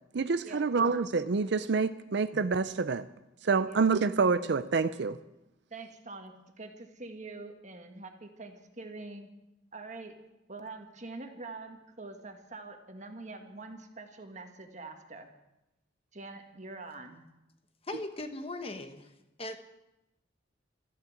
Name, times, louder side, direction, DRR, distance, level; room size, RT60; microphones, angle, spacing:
voice 1, 0.1-3.1 3.4-5.2, right 4 dB, 60° right, 12 dB, 0.5 m, -27 dB
voice 2, 5.7-9.3 9.7-10.2 10.5-15.3 16.1-17.2, right 3 dB, 40° right, 5 dB, 1.6 m, -45 dB
voice 3, 17.8-19.1 19.4-19.6, left 2 dB, 30° left, 7 dB, 1.2 m, -38 dB
13.5 x 11.5 x 8.5 m, 0.93 s
head